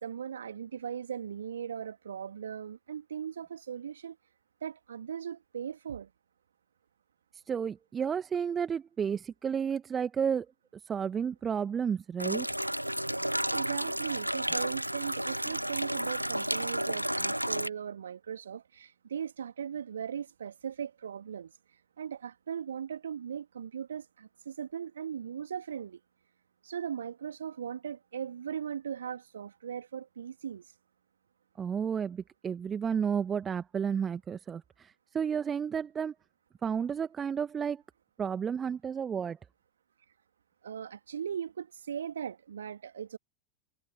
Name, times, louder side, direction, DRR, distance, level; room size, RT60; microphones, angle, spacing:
voice 1, 0.0-4.2 4.6-6.1 13.5-21.5 22.0-26.0 26.6-30.6 40.6-43.2, right 8 dB, 65° right, 2.6 m, -38 dB
voice 2, 7.5-10.5 10.9-12.5 31.6-36.1 36.6-37.8 38.2-39.4, right 7 dB, 20° right, 1.5 m, -32 dB
sound 1, 12.2-17.7, equal, 90° right, 0.5 m, -32 dB
figure-of-eight pair, 90°, 0 cm